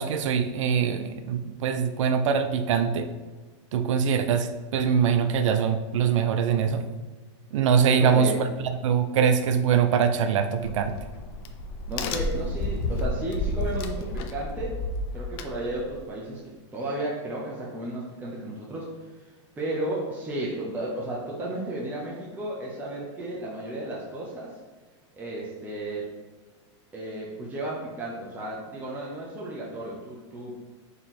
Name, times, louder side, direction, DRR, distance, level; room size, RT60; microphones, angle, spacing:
voice 1, 0.0-3.1 3.7-6.9 7.5-11.0, right 7 dB, 80° right, 9 dB, 0.4 m, -23 dB
voice 2, 7.9-8.4 11.9-14.8 15.1-16.4 16.7-18.9 19.6-24.5 25.1-26.1 26.9-30.5, right 1 dB, 10° right, -5 dB, 0.7 m, -33 dB
Crack, 10.6-16.1, left 2 dB, 50° left, 0.5 m, -31 dB
3.9 x 3.0 x 4.1 m, 1.2 s
supercardioid pair, 135°, 16 cm